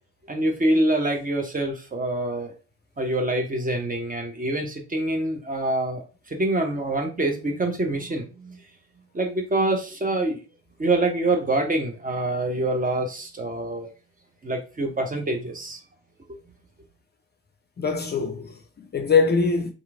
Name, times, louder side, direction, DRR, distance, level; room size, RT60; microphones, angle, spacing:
voice 1, 0.3-2.5 3.0-8.6 9.1-10.4 10.8-13.9 14.4-15.8, right 2 dB, 25° right, 0.8 m, -25 dB
voice 2, 17.8-19.7, left 5 dB, 30° left, 0.5 m, -23 dB
2.9 x 2.5 x 2.4 m
hypercardioid pair, 50°, 35 cm